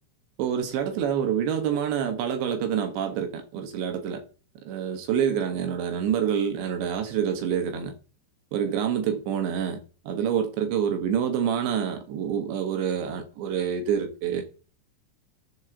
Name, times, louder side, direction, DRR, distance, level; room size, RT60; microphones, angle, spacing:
voice 1, 0.4-4.2 4.7-7.9 8.5-9.8 10.1-14.4, right 8 dB, 70° right, 3.4 m, -27 dB
11.5 x 4.7 x 7.2 m
omnidirectional pair, 5.7 m